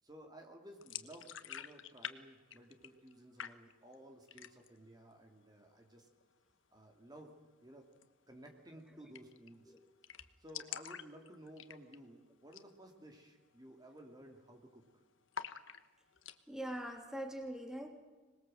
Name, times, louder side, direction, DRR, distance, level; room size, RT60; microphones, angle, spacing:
voice 1, 0.0-6.1 6.7-7.8 8.3-9.7 10.4-14.8, right 1 dB, 20° right, 2 dB, 2.8 m, -55 dB
sound 1, 0.8-2.2 2.4-3.1 3.4-4.0 4.3-4.8 5.2-5.3 5.6-6.2 7.9-8.1 8.4-8.5 8.7-8.8 9.1-9.5 9.8-9.9 10.0-12.1 12.4-12.7 13.1-13.2 13.7-14.0 14.2-14.8 15.3-16.4, left 8 dB, 85° left, 1.2 m, -47 dB
voice 2, 16.5-17.9, right 1 dB, 5° right, 3 dB, 3.0 m, -42 dB
25.5 x 21.0 x 7.8 m, 1.3 s
head